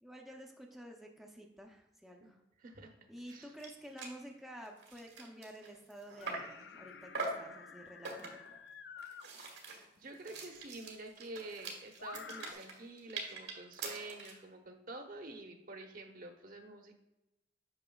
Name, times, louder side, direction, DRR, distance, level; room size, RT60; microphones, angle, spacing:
voice 1, 0.0-2.4 3.1-8.5, equal, ahead, 0 dB, 0.6 m, -51 dB
voice 2, 2.6-3.0 3.3-3.5 10.0-17.0, right 2 dB, 50° right, 4 dB, 0.9 m, -48 dB
sound 1, 3.3-3.4 3.6-3.7 4.0-4.2 4.6-6.6 7.1-7.5 8.0-8.5 9.0-14.4, right 3 dB, 85° right, 1.7 m, -43 dB
sound 2, 6.2-9.3 10.6-10.7 12.0-12.5, left 6 dB, 85° left, 0.5 m, -50 dB
8.7 x 5.9 x 2.3 m, 0.96 s
head